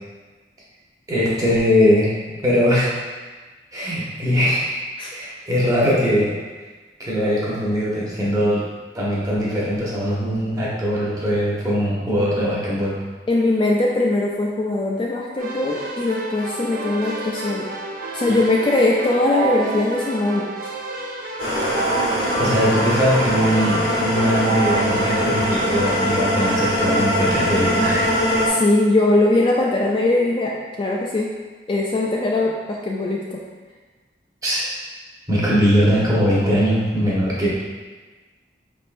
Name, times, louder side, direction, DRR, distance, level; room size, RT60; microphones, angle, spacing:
voice 1, 1.1-2.1 2.4-2.9 3.7-4.8 5.1-6.3 7.0-8.6 8.9-12.9 22.4-28.1 34.4-34.7 35.3-37.5, equal, 20° right, -7 dB, 1.0 m, -20 dB
voice 2, 13.3-17.7 18.1-20.7 28.5-31.3 31.7-33.4, left 2 dB, 30° left, -2 dB, 0.3 m, -20 dB
Keyboard (musical), 15.4-26.0, right 3 dB, 50° right, 0.5 m, -29 dB
sound 1, 21.4-28.5, equal, 90° left, 1.4 m, -22 dB
5.1 x 3.5 x 2.5 m, 1.3 s
head